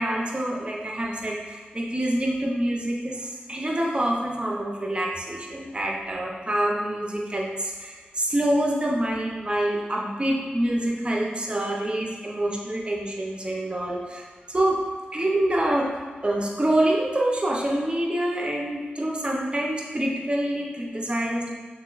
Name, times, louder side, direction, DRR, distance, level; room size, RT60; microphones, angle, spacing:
voice 1, 0.0-14.8 15.1-15.9 16.2-21.5, right 1 dB, 30° right, -1 dB, 0.8 m, -26 dB
6.3 x 2.8 x 2.5 m, 1.5 s
cardioid pair, 50°, 4 cm